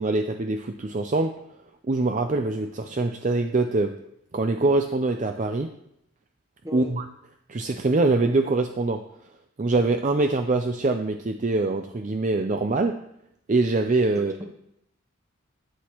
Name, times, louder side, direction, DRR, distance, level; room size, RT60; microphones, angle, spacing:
voice 1, 0.0-1.3 1.9-3.9 4.3-5.7 6.7-7.0 7.5-9.0 9.6-13.0 13.5-14.3, right 2 dB, 35° right, 6 dB, 0.4 m, -24 dB
voice 2, 14.1-14.4, equal, 15° right, 3 dB, 1.1 m, -37 dB
12.5 x 8.3 x 3.0 m, 0.78 s
head